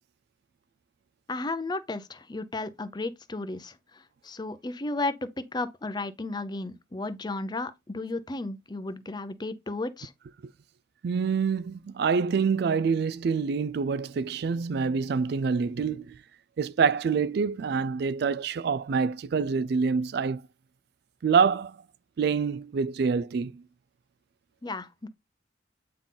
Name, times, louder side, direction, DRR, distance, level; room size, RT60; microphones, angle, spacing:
voice 1, 1.3-10.1 24.6-25.1, left 2 dB, 25° left, 0.6 m, -34 dB
voice 2, 11.0-16.2 16.6-20.4 21.2-21.8 22.2-23.6, right 5 dB, 60° right, 0.3 m, -26 dB
8.6 x 3.8 x 3.8 m
head